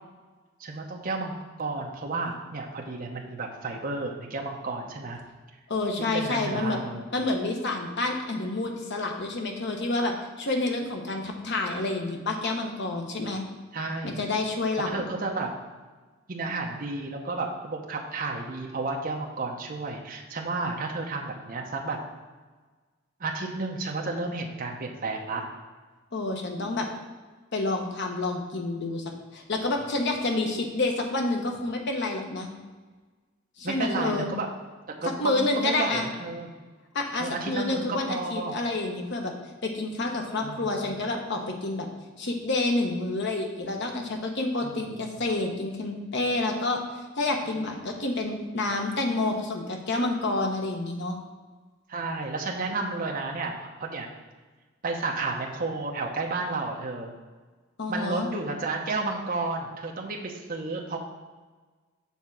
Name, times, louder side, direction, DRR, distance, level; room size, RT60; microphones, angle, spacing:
voice 1, 0.6-5.2 6.1-7.0 13.7-14.2 14.9-15.5 16.3-22.0 23.2-25.4 33.6-34.5 34.9-36.5 37.2-38.6 40.4-41.0 44.6-44.8 51.9-54.1 54.8-57.1 57.9-61.0, right 3 dB, 45° right, 0 dB, 0.8 m, -32 dB
voice 2, 5.7-6.8 7.1-13.4 14.0-15.0 26.1-26.9 27.5-29.0 29.3-32.5 33.6-34.3 35.2-36.1 36.9-39.3 39.6-41.9 42.2-46.8 47.2-51.2 57.8-58.3, left 2 dB, 60° left, 3 dB, 1.0 m, -28 dB
7.2 x 3.6 x 5.8 m, 1.3 s
head